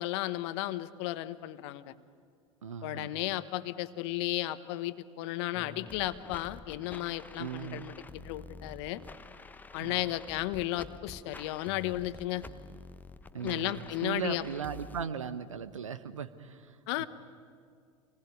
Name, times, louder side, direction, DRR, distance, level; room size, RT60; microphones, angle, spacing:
voice 1, 0.0-1.9 2.8-9.0 9.7-12.4 13.4-14.4 16.9-17.1, left 16 dB, 60° left, 13 dB, 1.2 m, -34 dB
voice 2, 2.6-3.1 7.4-7.9 9.8-10.1 13.3-17.1, right 7 dB, 85° right, 12 dB, 1.2 m, -38 dB
sound 1, 5.5-15.1, left 3 dB, 10° left, 0.9 m, -49 dB
28.0 x 20.0 x 9.4 m, 2.2 s
hypercardioid pair, 80°, 16 cm